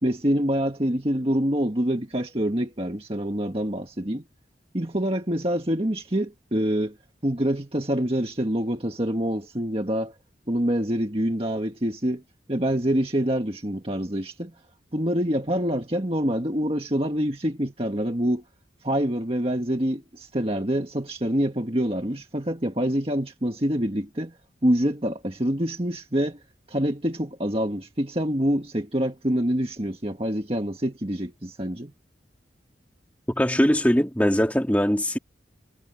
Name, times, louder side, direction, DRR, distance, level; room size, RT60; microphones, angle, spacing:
voice 1, 0.0-4.2 4.7-7.0 7.2-10.1 10.5-12.2 12.5-14.5 14.9-18.4 18.8-24.3 24.6-26.4 26.7-31.9, equal, 30° right, 1.8 m, -26 dB
voice 2, 33.3-35.2, equal, 10° left, 2.2 m, -21 dB
head